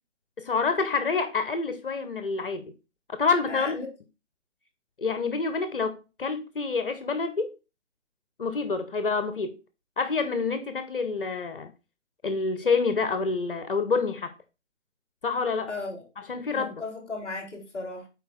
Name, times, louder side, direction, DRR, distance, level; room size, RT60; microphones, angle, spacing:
voice 1, 0.4-2.7 3.1-3.8 5.0-7.5 8.4-9.6 10.0-11.7 12.2-14.3 15.2-15.7 16.3-16.7, left 4 dB, 45° left, 0.8 m, -27 dB
voice 2, 3.5-3.9 15.7-16.1 16.5-18.1, left 3 dB, 5° left, 1.1 m, -36 dB
7.7 x 4.6 x 3.4 m
figure-of-eight pair, 150°, 37 cm